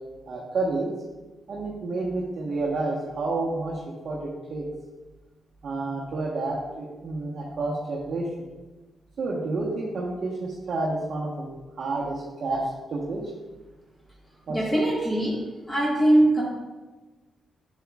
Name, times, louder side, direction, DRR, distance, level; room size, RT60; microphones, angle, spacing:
voice 1, 0.3-0.9 1.5-4.7 5.6-8.5 9.2-11.5 11.8-13.2 14.5-14.6, right 2 dB, 60° right, -5 dB, 1.2 m, -29 dB
voice 2, 14.5-15.4 15.7-16.4, right 1 dB, 15° left, -5 dB, 1.6 m, -21 dB
7.6 x 7.3 x 2.4 m, 1.2 s
cardioid pair, 75°, 0 cm